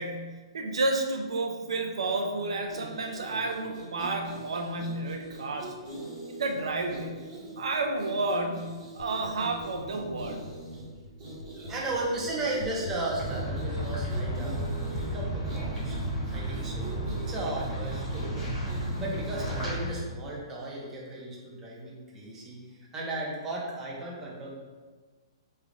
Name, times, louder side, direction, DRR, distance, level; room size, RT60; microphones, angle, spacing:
voice 1, 0.0-5.7 6.3-7.2 7.6-10.4, right 2 dB, 90° right, 3 dB, 0.5 m, -31 dB
sound 1, 2.6-19.7, right 1 dB, 40° right, 1.0 m, -44 dB
sound 2, 9.0-17.6, left 1 dB, 70° left, 0.4 m, -44 dB
voice 2, 11.4-16.0 16.3-22.6 22.9-24.5, right 2 dB, 15° right, -5 dB, 0.7 m, -35 dB
sound 3, 13.2-19.9, right 1 dB, 10° left, 1.1 m, -33 dB
3.2 x 2.3 x 3.7 m, 1.4 s
hypercardioid pair, 155°, 3 cm